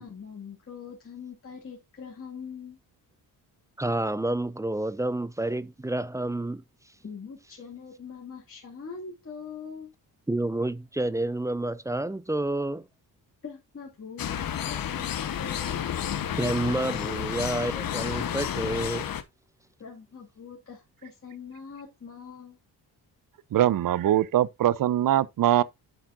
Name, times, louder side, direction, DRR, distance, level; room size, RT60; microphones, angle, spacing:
voice 1, 0.0-2.8 7.0-9.9 13.4-15.9 19.8-22.6, left 6 dB, 35° left, 2.3 m, -43 dB
voice 2, 3.8-6.6 10.3-12.8 16.4-19.1, right 2 dB, 10° right, 0.4 m, -29 dB
sound 1, 14.2-19.2, left 9 dB, 60° left, 1.1 m, -31 dB
voice 3, 23.5-25.6, right 12 dB, 55° right, 0.7 m, -22 dB
9.3 x 7.5 x 2.5 m
cardioid pair, 110°, 38 cm